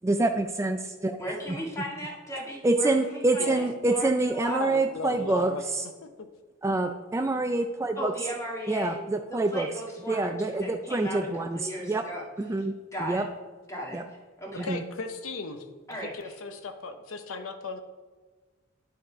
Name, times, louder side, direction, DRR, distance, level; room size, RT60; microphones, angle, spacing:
voice 1, 0.0-1.2 2.6-5.8 6.6-8.1 8.7-9.7 10.1-12.0 12.4-12.7 13.0-13.2 13.9-14.0 14.6-14.8, right 2 dB, 15° right, 5 dB, 0.3 m, -26 dB
voice 2, 1.2-4.6 8.0-9.0 9.3-12.2 12.5-12.6 12.9-13.2 13.7-14.7 15.9-16.1, equal, 15° left, -3 dB, 1.8 m, -36 dB
voice 3, 4.6-5.6 14.6-15.6 16.0-17.8, left 3 dB, 85° left, 8 dB, 0.7 m, -35 dB
10.5 x 3.9 x 4.7 m, 1.4 s
head